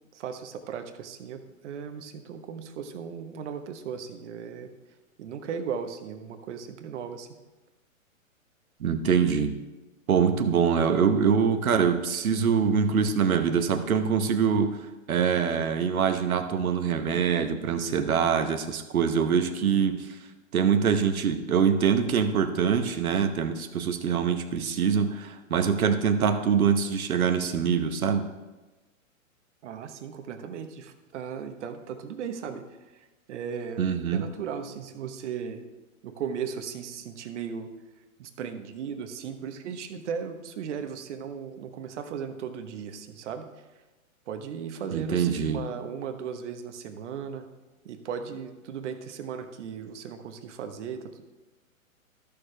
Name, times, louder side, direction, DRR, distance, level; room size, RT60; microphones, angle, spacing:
voice 1, 0.1-4.7 5.2-7.3 29.6-32.6 32.9-33.9 34.1-35.6 36.0-37.7 38.2-43.5 44.3-47.5 47.8-51.2, right 7 dB, 55° right, 7 dB, 1.1 m, -36 dB
voice 2, 8.8-9.5 10.1-20.1 20.5-28.3 33.8-34.3 44.9-45.6, right 6 dB, 85° right, 7 dB, 1.0 m, -24 dB
13.5 x 6.7 x 3.3 m, 1.1 s
hypercardioid pair, 130°, 41 cm